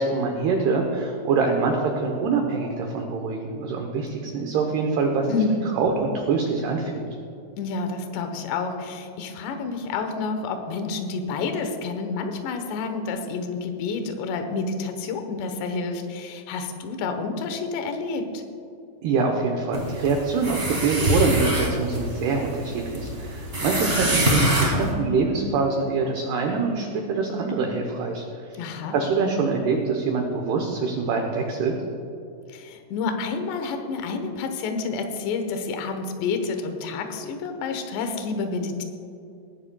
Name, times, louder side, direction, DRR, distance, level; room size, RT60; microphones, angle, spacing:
voice 1, 0.0-5.3 5.7-7.1 19.0-28.5 28.9-31.7, right 4 dB, 80° right, 2 dB, 2.3 m, -25 dB
voice 2, 5.3-5.8 7.6-18.4 28.6-29.0 32.5-38.8, left 4 dB, 75° left, 6 dB, 2.8 m, -29 dB
sound 1, 19.7-24.9, equal, 30° right, 1.1 m, -25 dB
20.5 x 11.5 x 2.3 m, 2.6 s
omnidirectional pair, 5.8 m